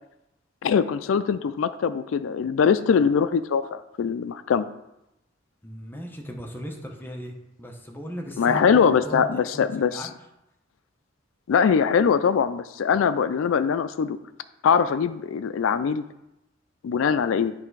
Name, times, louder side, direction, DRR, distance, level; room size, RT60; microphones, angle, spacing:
voice 1, 0.6-4.6 8.4-10.0 11.5-14.2 14.6-16.0 16.8-17.5, left 6 dB, 80° left, 12 dB, 0.4 m, -22 dB
voice 2, 5.6-10.1, equal, 10° left, 1 dB, 0.8 m, -37 dB
8.6 x 3.3 x 4.7 m, 0.88 s
head